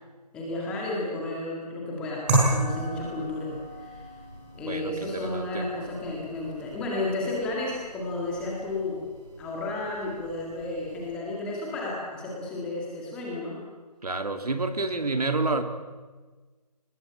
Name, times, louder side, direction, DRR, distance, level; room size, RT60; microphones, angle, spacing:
voice 1, 0.3-4.1 4.5-9.0 9.4-13.6, left 2 dB, 5° left, -3 dB, 1.9 m, -32 dB
sound 1, 2.3-11.1, right 2 dB, 15° right, 6.0 m, -33 dB
voice 2, 4.7-5.7 14.0-15.6, right 3 dB, 65° right, 8 dB, 2.7 m, -29 dB
23.0 x 20.5 x 8.5 m, 1.3 s
figure-of-eight pair, 170°, 21 cm